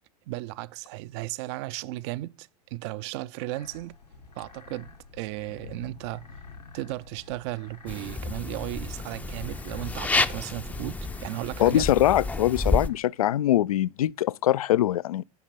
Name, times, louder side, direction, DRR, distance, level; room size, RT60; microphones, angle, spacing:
voice 1, 0.3-4.0 4.4-6.3 6.7-11.9, right 17 dB, 45° right, 0.5 m, -35 dB
sound 1, 3.5-13.0, left 4 dB, 85° left, 1.9 m, -50 dB
sound 2, 7.9-12.9, left 3 dB, 10° left, 0.5 m, -30 dB
voice 2, 11.6-15.2, left 13 dB, 65° left, 0.4 m, -23 dB
9.5 x 5.8 x 5.5 m
figure-of-eight pair, 90°, 20 cm